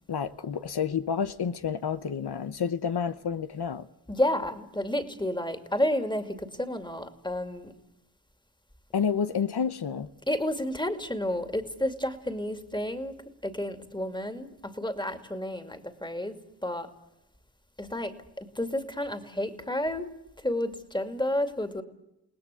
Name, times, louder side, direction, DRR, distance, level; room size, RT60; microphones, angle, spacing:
voice 1, 0.1-3.9 8.9-10.1, left 7 dB, 85° left, 1.0 m, -29 dB
voice 2, 4.1-7.7 10.3-16.9 17.8-20.1 20.4-21.8, left 1 dB, 10° left, 2.4 m, -31 dB
30.0 x 19.5 x 8.3 m
wide cardioid pair, 100°, 38 cm